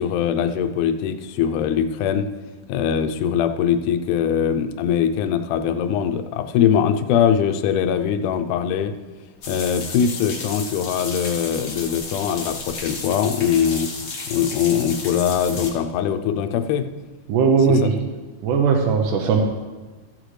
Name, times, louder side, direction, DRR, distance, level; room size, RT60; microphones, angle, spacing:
voice 1, 0.0-2.3 2.7-8.9 9.5-13.9 14.3-16.9 17.7-17.9, left 8 dB, 80° left, 9 dB, 2.0 m, -22 dB
sound 1, 9.4-15.7, left 3 dB, 50° left, 1.2 m, -33 dB
voice 2, 17.3-17.9 18.4-19.4, right 5 dB, 80° right, 1 dB, 2.3 m, -18 dB
15.0 x 9.0 x 3.2 m, 1.3 s
omnidirectional pair, 3.8 m